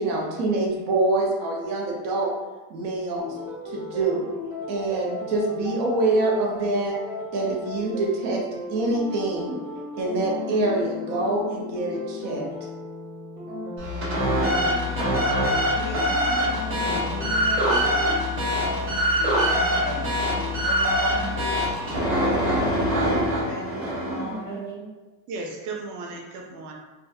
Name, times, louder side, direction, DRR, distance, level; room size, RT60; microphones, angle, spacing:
voice 1, 0.0-2.3 2.7-3.3 3.6-4.2 4.7-7.0 7.3-8.4 8.7-9.6 10.0-12.5, right 2 dB, 80° right, -2 dB, 1.0 m, -25 dB
sound 1, 3.2-21.5, left 3 dB, 10° right, 0.7 m, -35 dB
sound 2, 13.8-24.3, equal, 30° right, 1.0 m, -24 dB
voice 2, 15.7-16.4 16.8-16.9 17.3-18.0 18.3-18.6 19.4-20.2 20.6-21.4 23.3-24.6, left 1 dB, 25° left, -4 dB, 0.5 m, -37 dB
voice 3, 24.1-24.9 25.3-26.7, right 3 dB, 45° right, 0 dB, 0.5 m, -35 dB
3.6 x 2.3 x 2.7 m, 1.2 s
cardioid pair, 165°, 43 cm